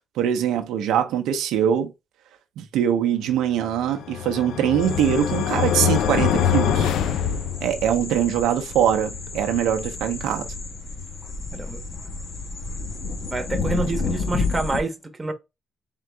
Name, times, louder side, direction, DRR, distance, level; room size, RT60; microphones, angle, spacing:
voice 1, 0.2-1.9 2.6-6.9 7.6-10.5, right 9 dB, 90° right, 0.7 m, -23 dB
sound 1, 3.7-8.0, left 10 dB, 85° left, 0.4 m, -24 dB
sound 2, 4.8-14.8, left 4 dB, 55° left, 1.0 m, -30 dB
voice 2, 13.3-14.9 15.2-15.3, right 3 dB, 20° right, 1.1 m, -27 dB
3.8 x 3.6 x 3.3 m
cardioid pair, 90°, 0 cm